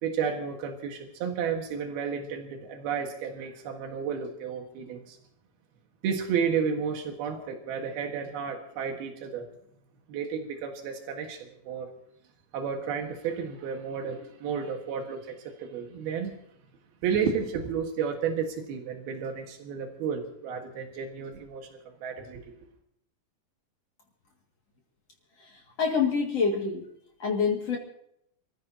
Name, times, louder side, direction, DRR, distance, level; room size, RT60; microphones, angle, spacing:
voice 1, 0.0-5.2 6.0-9.5 10.1-11.9 12.5-16.4 17.0-22.5, right 6 dB, 90° right, 3 dB, 3.6 m, -32 dB
voice 2, 25.4-26.9 27.2-27.8, left 5 dB, 45° left, -1 dB, 2.9 m, -27 dB
28.0 x 15.0 x 2.9 m, 0.73 s
omnidirectional pair, 4.2 m